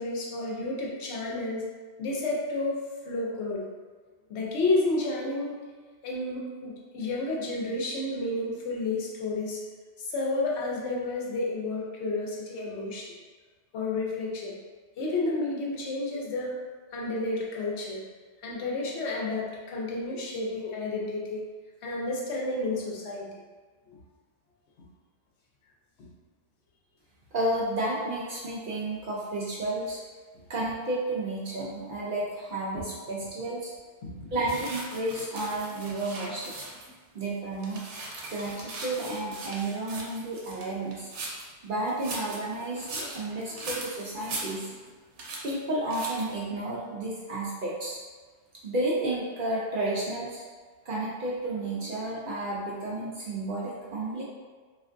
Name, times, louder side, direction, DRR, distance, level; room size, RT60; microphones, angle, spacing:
voice 1, 0.0-1.6 2.0-2.8 3.1-3.7 4.3-5.6 6.0-9.6 10.0-13.1 13.7-14.6 15.0-16.5 16.9-18.1 18.4-21.4 21.8-23.3 23.9-24.0 34.0-34.3, left 2 dB, 70° left, -3 dB, 0.9 m, -31 dB
voice 2, 27.3-30.0 30.5-33.7 34.3-36.5 37.1-37.8 38.3-41.1 41.6-44.7 45.4-48.0 48.6-50.4 50.8-54.2, right 2 dB, 60° right, -5 dB, 0.6 m, -31 dB
sound 1, 34.5-37.0 37.4-41.5 41.9-44.9 45.2-45.5 45.9-46.4, right 2 dB, 85° right, 1.0 m, -40 dB
3.3 x 2.5 x 2.5 m, 1.4 s
omnidirectional pair, 1.2 m